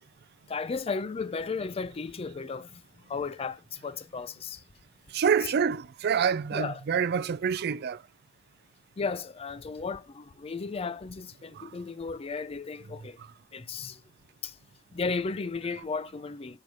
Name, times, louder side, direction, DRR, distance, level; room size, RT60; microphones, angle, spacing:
voice 1, 0.5-4.6 6.5-6.8 9.0-13.2 13.5-14.0 14.4-14.6 14.9-16.6, left 4 dB, 30° left, 0.4 m, -34 dB
voice 2, 5.1-8.0 11.5-11.7 13.2-13.3, right 7 dB, 55° right, 0.4 m, -27 dB
6.4 x 4.2 x 4.7 m
head